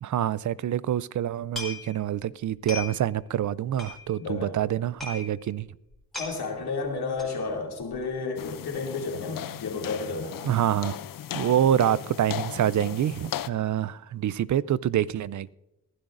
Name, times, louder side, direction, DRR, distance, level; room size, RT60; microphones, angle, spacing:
voice 1, 0.0-5.7 10.4-11.0 11.3-15.5, right 10 dB, 55° right, 0.4 m, -26 dB
sound 1, 1.5-2.2 2.5-3.1 3.4-3.5 3.7-4.4 4.7-4.8 5.0-5.3 5.6-5.7 5.9-6.4 7.2-7.4 7.8-8.1 8.4-8.5, left 3 dB, ahead, 4.0 m, -37 dB
voice 2, 4.2-4.6 6.2-10.4, left 4 dB, 85° left, 2.6 m, -32 dB
sound 2, 8.4-13.5, left 11 dB, 60° left, 0.5 m, -37 dB
22.0 x 12.0 x 2.6 m
cardioid pair, 80°, 37 cm